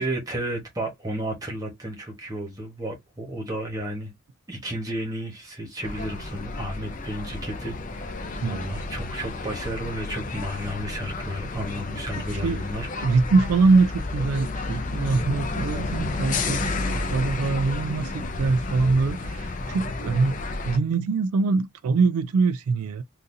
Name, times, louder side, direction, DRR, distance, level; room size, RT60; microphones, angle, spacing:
voice 1, 0.0-4.1 4.5-13.0 19.7-19.8, right 1 dB, 15° right, 1.2 m, -33 dB
sound 1, 5.8-20.8, left 3 dB, 35° left, 0.5 m, -31 dB
voice 2, 8.4-8.8 12.1-12.6 13.0-20.3 20.6-23.0, right 4 dB, 90° right, 0.4 m, -23 dB
3.9 x 2.5 x 2.6 m
head